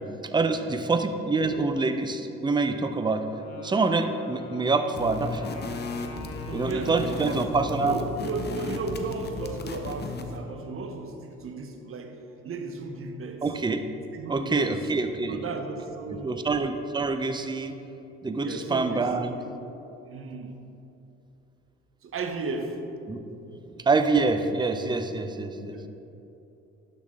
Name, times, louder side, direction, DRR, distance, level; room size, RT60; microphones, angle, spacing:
voice 1, 0.2-3.2 3.6-5.5 6.5-8.0 13.4-13.8 14.3-15.4 16.2-17.7 18.2-19.3 23.1-23.2 23.8-25.9, right 3 dB, 15° right, 8 dB, 0.5 m, -26 dB
Wind instrument woodwind instrument, 3.2-8.1, left 5 dB, 60° left, 1.0 m, -43 dB
sound 1, 4.9-10.4, left 3 dB, 35° left, 0.8 m, -35 dB
voice 2, 6.5-7.5 7.8-12.2 12.4-13.5 14.1-14.9 15.3-16.4 18.4-19.5 20.1-20.6 22.0-22.8 23.5-23.6 25.6-25.9, right 3 dB, 45° right, 5 dB, 0.9 m, -35 dB
12.0 x 4.1 x 3.7 m, 2.9 s
supercardioid pair, 65°, 31 cm